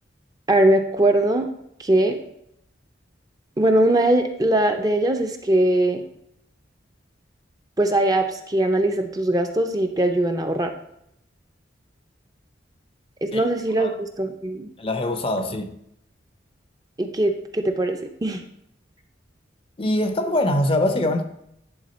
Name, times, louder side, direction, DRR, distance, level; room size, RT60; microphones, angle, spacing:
voice 1, 0.5-1.5 1.8-2.2 3.6-6.0 7.8-10.7 13.2-14.7 17.0-18.4, right 1 dB, 20° right, 0.5 m, -21 dB
voice 2, 14.8-15.8 19.8-21.2, left 1 dB, 30° left, 0.5 m, -23 dB
10.5 x 3.6 x 4.1 m
head